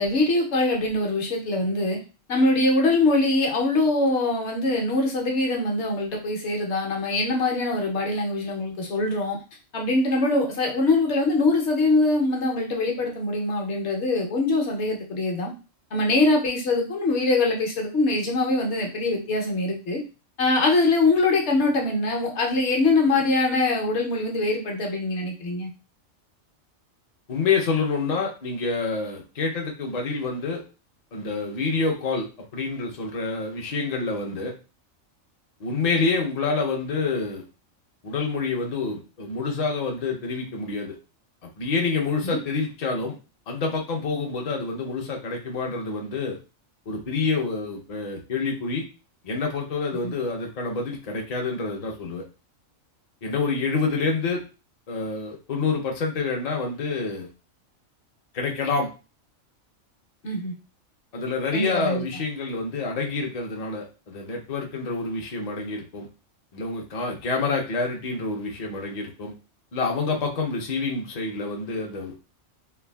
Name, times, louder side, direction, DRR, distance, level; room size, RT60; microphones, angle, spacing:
voice 1, 0.0-2.0 2.3-9.4 9.7-15.5 15.9-20.0 20.4-25.7 42.2-42.4 50.0-50.1 60.2-60.5 61.5-62.0, left 2 dB, 65° left, 0 dB, 1.0 m, -23 dB
voice 2, 27.3-30.6 31.1-32.3 32.5-34.5 35.6-37.4 38.0-41.0 41.4-43.1 43.5-46.4 46.9-48.8 49.2-52.2 53.2-54.4 54.9-57.3 58.3-58.9 61.1-66.1 66.5-69.3 69.7-72.1, left 4 dB, 45° left, 0 dB, 0.5 m, -27 dB
3.3 x 2.3 x 2.2 m, 0.32 s
omnidirectional pair, 1.4 m